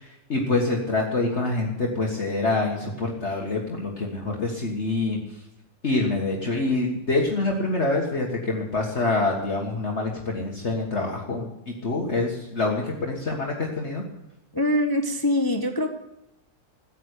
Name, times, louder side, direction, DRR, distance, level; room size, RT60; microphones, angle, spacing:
voice 1, 0.0-5.2 5.8-14.0, left 2 dB, 45° left, -1 dB, 1.9 m, -26 dB
voice 2, 14.5-15.9, left 1 dB, 15° left, 5 dB, 0.9 m, -23 dB
14.5 x 9.1 x 8.1 m, 0.84 s
omnidirectional pair, 1.6 m